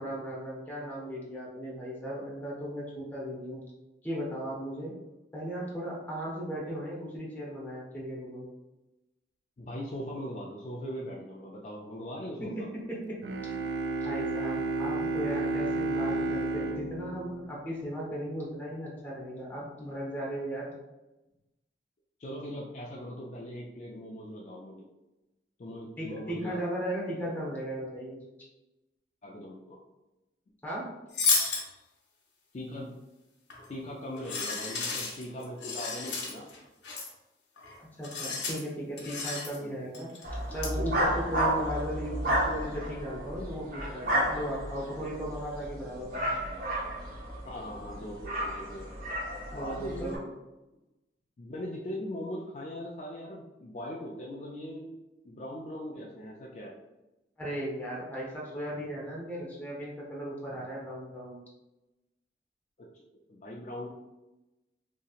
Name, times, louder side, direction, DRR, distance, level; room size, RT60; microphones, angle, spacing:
voice 1, 0.0-3.6 4.0-4.9 5.3-8.5 12.4-13.2 13.5-13.6 14.0-20.7 26.0-28.2 30.6-30.9 37.8-40.1 40.5-46.3 49.5-50.2 57.4-61.4, equal, 10° left, -5 dB, 0.7 m, -36 dB
voice 2, 9.6-12.5 22.2-24.8 25.6-26.6 29.2-29.8 32.5-33.0 33.7-36.5 39.6-39.7 47.4-48.9 49.5-50.2 51.4-54.9 55.2-56.7 62.8-62.9 63.1-63.9, equal, 40° left, -3 dB, 0.3 m, -40 dB
Bowed string instrument, 13.2-18.2, right 2 dB, 75° right, 0.3 m, -32 dB
sound 1, 31.1-31.7 33.5-33.7 34.2-36.6 36.8-37.1 37.6-37.8 38.0-38.6 39.0-39.6 39.9-40.2 40.6-40.7, left 4 dB, 85° left, 0.8 m, -32 dB
sound 2, 40.2-50.2, right 1 dB, 50° right, 0.7 m, -32 dB
2.8 x 2.8 x 2.4 m, 1.0 s
head